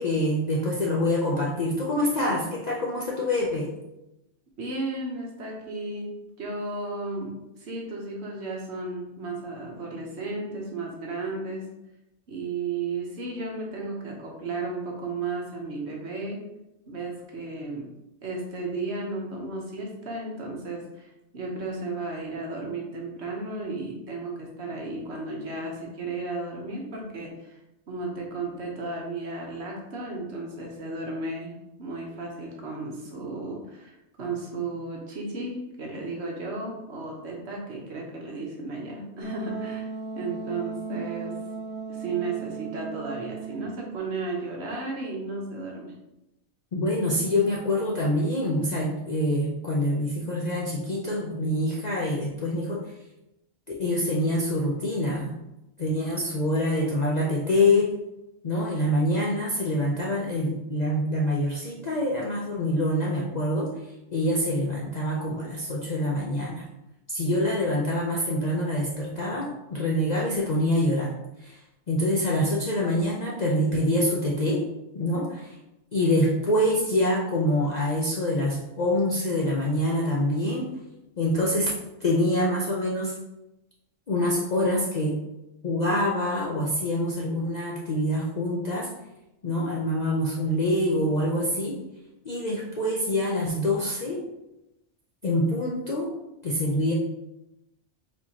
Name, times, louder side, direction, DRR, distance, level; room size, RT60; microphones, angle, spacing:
voice 1, 0.0-3.7 46.7-52.9 53.8-55.4 55.8-57.9 58.4-63.7 64.1-66.6 67.1-71.1 71.4-71.6 71.9-74.6 74.9-75.6 75.9-80.7 81.2-81.7 82.0-83.2 84.1-85.2 85.6-88.9 89.4-91.8 92.2-94.2 95.2-96.1 96.4-96.9, left 1 dB, 50° left, -3 dB, 0.5 m, -25 dB
voice 2, 4.6-6.1 6.4-11.7 12.3-16.4 16.9-17.9 18.2-27.6 27.9-31.5 31.8-39.9 40.1-41.3 41.9-45.9, right 3 dB, 60° right, -1 dB, 1.2 m, -34 dB
Wind instrument woodwind instrument, 39.2-44.0, right 6 dB, 15° right, 0.4 m, -36 dB
4.8 x 3.6 x 2.8 m, 0.93 s
omnidirectional pair, 1.3 m